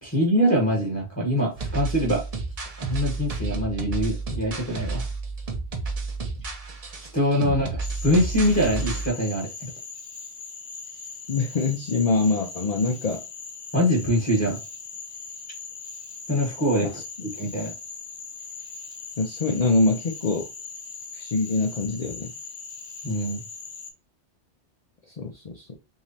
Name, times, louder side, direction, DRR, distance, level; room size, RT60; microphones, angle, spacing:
voice 1, 0.0-2.2 2.8-5.1 7.1-9.7 13.7-14.6 16.3-16.9 17.2-17.7 23.0-23.4, equal, 15° left, -3 dB, 1.1 m, -24 dB
sound 1, 1.6-9.1, right 3 dB, 40° right, 0.7 m, -31 dB
Cricket / Frog, 7.8-23.9, left 5 dB, 65° left, 1.1 m, -40 dB
voice 2, 11.3-13.2 16.8-16.9 19.2-20.4 21.1-22.3 25.2-25.8, left 3 dB, 45° left, 2 dB, 0.6 m, -24 dB
3.7 x 3.1 x 2.7 m, 0.29 s
omnidirectional pair, 1.1 m